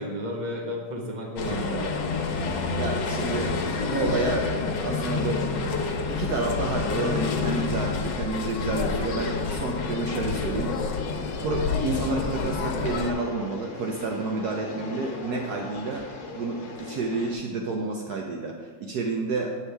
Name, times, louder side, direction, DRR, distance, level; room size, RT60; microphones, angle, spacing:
voice 1, 0.0-2.1, equal, 30° right, -1 dB, 1.2 m, -33 dB
sound 1, 1.4-13.1, left 4 dB, 80° left, 1.4 m, -28 dB
voice 2, 1.5-1.8 2.8-4.5 4.8-5.5 6.1-10.8 11.4-16.1 16.3-19.5, right 3 dB, 70° right, 1 dB, 1.2 m, -30 dB
sound 2, 2.3-17.3, left 3 dB, 50° left, 1.2 m, -39 dB
8.4 x 7.1 x 3.4 m, 1.5 s
omnidirectional pair, 1.9 m